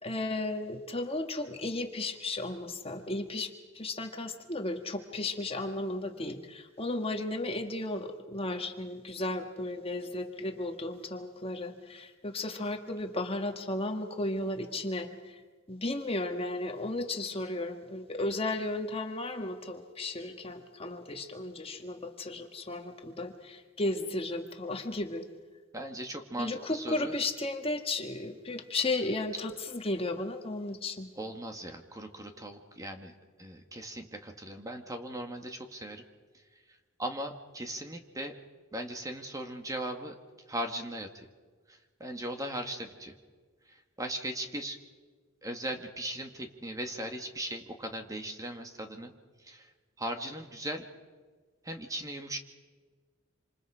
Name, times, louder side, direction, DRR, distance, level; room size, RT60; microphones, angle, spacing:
voice 1, 0.0-3.5 3.7-15.3 15.7-25.3 26.4-31.1, left 2 dB, 30° left, 5 dB, 1.6 m, -34 dB
voice 2, 25.7-27.1 31.2-33.1 33.4-36.0 37.0-38.3 38.7-40.2 40.5-41.3 41.7-43.2 43.7-44.8 45.4-49.1 49.4-49.7 50.0-50.9 51.6-52.4, right 1 dB, 15° right, 5 dB, 1.9 m, -38 dB
27.0 x 27.0 x 5.0 m, 1.4 s
head